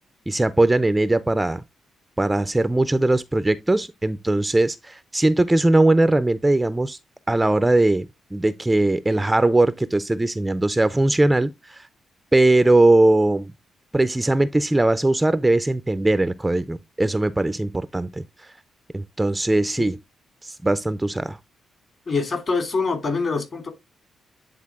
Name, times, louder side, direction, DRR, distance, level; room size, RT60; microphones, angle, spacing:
voice 1, 0.3-1.6 2.2-7.0 7.3-8.1 8.3-11.9 12.3-13.5 13.9-18.2 18.9-20.0 20.4-21.4, right 2 dB, 10° right, 0.4 m, -20 dB
voice 2, 22.1-23.7, left 4 dB, 45° left, 2.7 m, -24 dB
9.5 x 3.9 x 3.5 m
cardioid pair, 105°, 0 cm